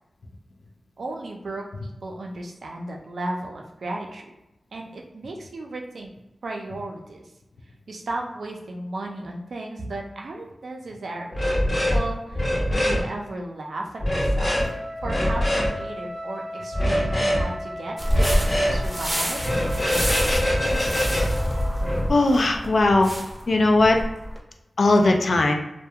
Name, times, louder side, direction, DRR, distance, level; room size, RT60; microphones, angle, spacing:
voice 1, 1.0-4.3 4.7-6.1 6.4-7.2 7.9-11.5 11.9-14.6 15.0-19.4, right 2 dB, 80° right, 1 dB, 0.4 m, -35 dB
sound 1, 11.3-12.0 12.3-13.0 14.0-14.6 15.0-15.7 16.7-17.4 18.1-18.8 19.4-22.1, equal, 55° left, 0.9 m, -23 dB
Wind instrument woodwind instrument, 14.5-22.2, equal, 50° right, 0.7 m, -37 dB
sound 2, 18.0-24.4, equal, 15° right, 0.6 m, -28 dB
voice 2, 22.1-23.2 23.5-24.0 24.8-25.5, left 2 dB, 75° left, 3 dB, 0.3 m, -18 dB
2.2 x 2.2 x 2.7 m, 0.94 s
cardioid pair, 50°, 0 cm